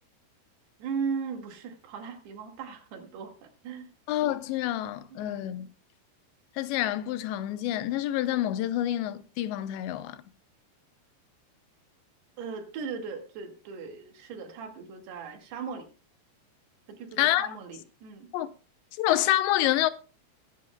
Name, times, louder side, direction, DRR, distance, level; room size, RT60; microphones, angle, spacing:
voice 1, 0.8-3.9 5.1-5.7 12.4-15.9 16.9-18.3, right 5 dB, 70° right, 3.9 m, -38 dB
voice 2, 4.1-5.7 6.6-10.2 17.2-17.6 18.3-18.5 19.0-19.9, left 13 dB, 90° left, 3.1 m, -27 dB
23.0 x 10.0 x 2.2 m
omnidirectional pair, 4.9 m